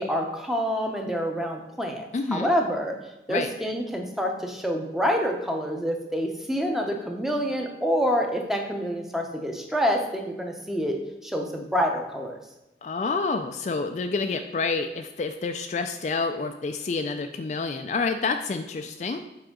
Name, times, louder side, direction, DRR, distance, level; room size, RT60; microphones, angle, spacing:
voice 1, 0.0-2.0 2.3-2.9 3.3-10.9 11.2-12.4, equal, ahead, 2 dB, 0.7 m, -27 dB
voice 2, 2.1-2.5 3.3-3.5 12.8-19.2, left 4 dB, 40° left, 6 dB, 0.3 m, -28 dB
7.6 x 4.9 x 3.7 m, 0.95 s
head